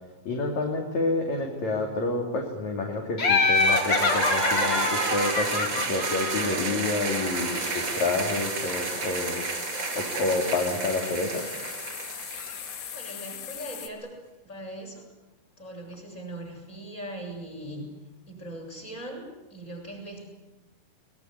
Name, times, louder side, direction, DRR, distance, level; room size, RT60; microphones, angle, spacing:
voice 1, 0.3-9.5 10.0-11.4, left 3 dB, 45° left, 2 dB, 3.6 m, -29 dB
Laughter, 3.2-6.8, left 3 dB, 65° left, 1.1 m, -25 dB
sound 1, 3.5-13.3, right 4 dB, 30° right, 2.9 m, -31 dB
sound 2, 5.6-6.0 6.9-13.9, left 10 dB, 85° left, 4.1 m, -40 dB
voice 2, 12.9-14.1 14.5-15.0 15.6-17.9 18.3-20.3, right 1 dB, 15° left, 0 dB, 7.7 m, -40 dB
23.0 x 21.0 x 9.7 m, 1.0 s
omnidirectional pair, 5.1 m